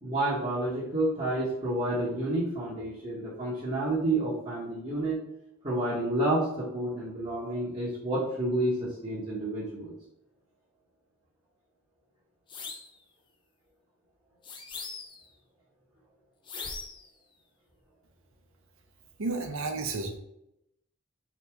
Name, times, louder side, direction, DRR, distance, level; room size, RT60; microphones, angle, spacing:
voice 1, 0.0-5.2 5.6-9.9, right 1 dB, 30° right, -8 dB, 1.0 m, -29 dB
sound 1, 12.5-13.0 14.4-15.3 16.5-17.1, left 4 dB, 20° left, 0.4 m, -40 dB
voice 2, 19.2-20.2, right 3 dB, 70° right, 4 dB, 0.7 m, -32 dB
4.1 x 3.0 x 3.4 m, 0.83 s
head